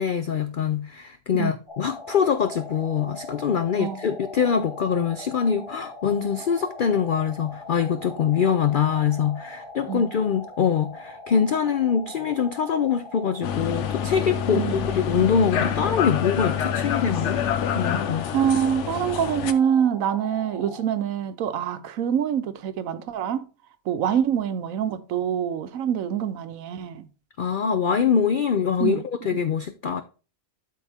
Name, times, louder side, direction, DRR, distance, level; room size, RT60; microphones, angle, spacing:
voice 1, 0.0-17.4 17.7-18.3 27.4-30.0, left 7 dB, 85° left, 0.4 m, -24 dB
sound 1, 1.7-20.8, left 2 dB, 20° left, 1.7 m, -41 dB
voice 2, 3.8-4.2 9.9-10.2 14.5-14.9 18.3-23.5 23.9-27.1 28.8-29.0 29.3-29.4, right 9 dB, 70° right, 1.1 m, -25 dB
sound 2, 13.4-19.5, left 8 dB, 65° left, 0.9 m, -27 dB
12.0 x 4.3 x 3.4 m
omnidirectional pair, 1.5 m